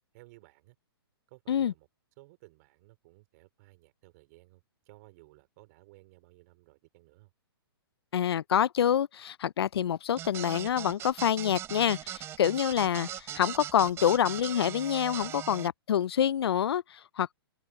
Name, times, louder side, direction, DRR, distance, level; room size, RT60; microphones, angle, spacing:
voice 1, 0.1-0.8 1.3-1.9 2.2-7.3, right 22 dB, 40° right, 3.7 m, -57 dB
voice 2, 8.1-17.3, left 9 dB, 75° left, 0.5 m, -27 dB
sound 1, 10.2-15.7, right 11 dB, 20° right, 0.8 m, -39 dB
open air
hypercardioid pair, 140°, 13 cm